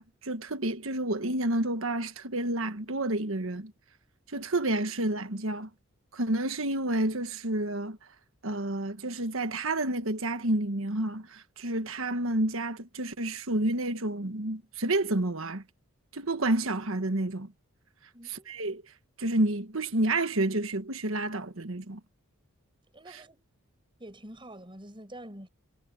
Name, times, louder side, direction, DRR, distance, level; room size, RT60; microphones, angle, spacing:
voice 1, 0.0-3.7 4.3-5.7 6.1-8.0 8.4-15.6 16.1-17.5 18.5-18.8 19.2-22.0, right 1 dB, 65° right, 1.5 m, -29 dB
voice 2, 18.1-18.6 22.9-23.4 24.0-25.5, right 1 dB, 25° right, 6.8 m, -46 dB
head